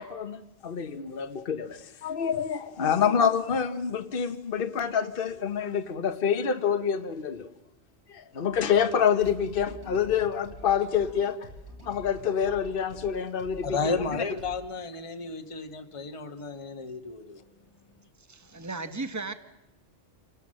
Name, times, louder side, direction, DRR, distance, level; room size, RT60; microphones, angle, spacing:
voice 1, 0.0-7.5 8.1-11.5 11.8-14.2, left 7 dB, 55° left, 9 dB, 1.2 m, -27 dB
sound 1, 8.5-14.5, right 1 dB, 65° right, 5.9 m, -47 dB
voice 2, 13.6-17.4, left 4 dB, 30° left, 7 dB, 1.2 m, -32 dB
voice 3, 18.3-19.3, right 3 dB, 15° right, 9 dB, 1.2 m, -35 dB
27.0 x 18.0 x 7.6 m, 0.94 s
omnidirectional pair, 1.2 m